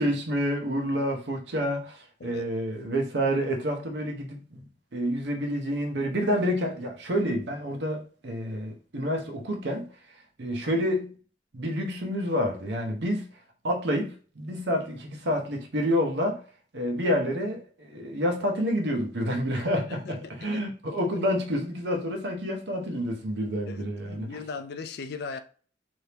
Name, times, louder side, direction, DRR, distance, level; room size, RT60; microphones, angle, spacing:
voice 1, 0.0-4.6 4.9-9.9 10.4-11.1 11.5-13.3 13.6-16.4 16.7-24.3, equal, 65° right, 0.8 m, -28 dB
voice 2, 20.0-20.6 23.7-25.4, left 5 dB, 60° left, 0.4 m, -38 dB
3.3 x 2.7 x 2.9 m
head